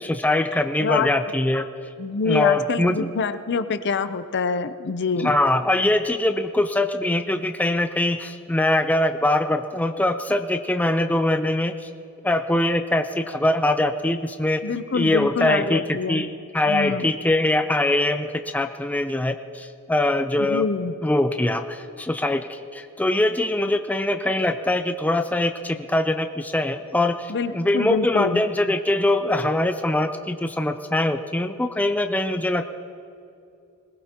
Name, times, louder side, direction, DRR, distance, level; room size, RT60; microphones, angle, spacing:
voice 1, 0.0-1.7 2.3-3.1 5.2-11.9 12.2-14.6 14.9-16.3 16.5-20.7 21.0-32.7, left 1 dB, 5° left, 7 dB, 0.4 m, -23 dB
voice 2, 0.8-1.1 2.0-5.3 14.6-16.3 16.7-17.1 20.4-20.9 27.3-28.4, left 4 dB, 50° left, 12 dB, 0.6 m, -25 dB
21.0 x 18.5 x 2.9 m, 2.5 s
head